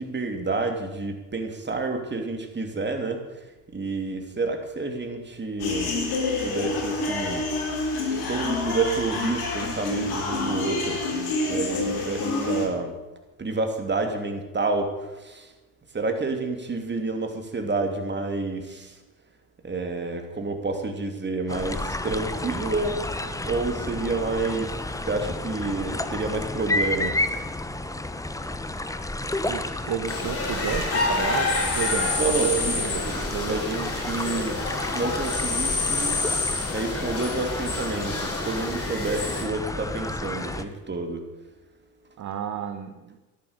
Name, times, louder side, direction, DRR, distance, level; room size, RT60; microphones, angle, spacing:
voice 1, 0.0-3.3 3.7-6.0 6.4-7.5 8.3-11.0 11.5-13.0 13.4-15.5 15.9-18.9 19.6-22.9 23.4-24.8 25.1-27.3 32.2-34.6 34.9-36.2 36.7-41.3, right 3 dB, 25° right, 5 dB, 2.9 m, -29 dB
sound 1, 5.6-12.7, left 3 dB, 55° left, 4.2 m, -28 dB
sound 2, 21.5-40.6, left 2 dB, 5° left, 1.1 m, -31 dB
voice 2, 29.4-32.2 32.4-33.6 42.2-43.2, right 8 dB, 40° right, 8 dB, 1.2 m, -32 dB
sound 3, 30.1-39.4, left 3 dB, 30° left, 3.9 m, -28 dB
14.0 x 11.5 x 6.8 m, 1.1 s
hypercardioid pair, 65°, 45 cm